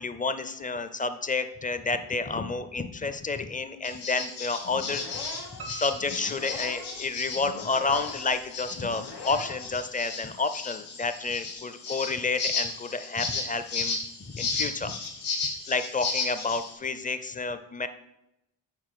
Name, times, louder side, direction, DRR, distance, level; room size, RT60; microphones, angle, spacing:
voice 1, 0.0-14.0 14.3-15.0 15.3-15.4 15.7-17.9, left 4 dB, 20° left, 10 dB, 0.5 m, -30 dB
sound 1, 3.8-16.7, left 4 dB, 90° left, 1.7 m, -34 dB
sound 2, 4.6-9.8, left 3 dB, 55° left, 1.3 m, -42 dB
Piano, 5.6-7.5 7.9-8.8 9.1-9.2 9.7-9.8 10.0-10.1, right 2 dB, 85° right, 0.8 m, -47 dB
6.0 x 3.9 x 4.8 m, 0.88 s
supercardioid pair, 60°, 46 cm